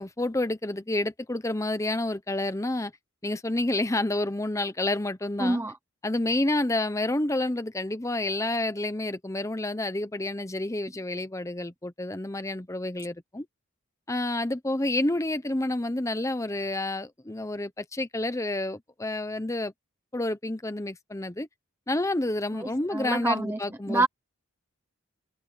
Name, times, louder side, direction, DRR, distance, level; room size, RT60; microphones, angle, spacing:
voice 1, 0.0-2.9 3.2-5.6 6.0-13.5 14.1-19.7 20.1-21.5 21.9-24.1, left 2 dB, 15° left, 0.8 m, -29 dB
voice 2, 5.4-5.7 22.5-23.6 23.9-24.1, right 2 dB, 10° right, 0.9 m, -26 dB
head